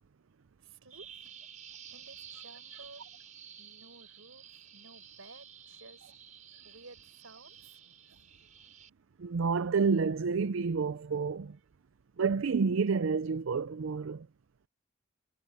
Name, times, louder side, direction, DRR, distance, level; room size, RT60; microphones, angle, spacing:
voice 1, 0.6-1.3 1.9-3.0 3.6-6.1 6.6-7.8, right 3 dB, 85° right, 5.8 m, -54 dB
Bird vocalization bird call bird song, 0.9-8.9, right 8 dB, 40° right, 3.6 m, -52 dB
voice 2, 9.2-11.6 12.2-14.3, right 5 dB, 70° right, 0.5 m, -29 dB
head